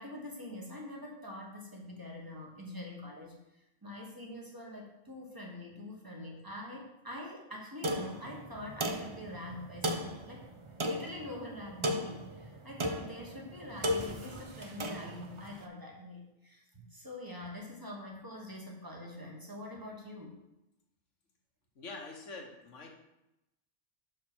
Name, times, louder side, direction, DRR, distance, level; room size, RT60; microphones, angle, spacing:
voice 1, 0.0-10.4 10.9-20.4, left 1 dB, 15° right, -1 dB, 1.4 m, -45 dB
sound 1, 7.8-15.6, equal, 35° right, 0.5 m, -37 dB
voice 2, 21.7-23.0, left 3 dB, 75° left, 1 dB, 1.7 m, -45 dB
5.5 x 5.0 x 6.2 m, 0.90 s
omnidirectional pair, 1.3 m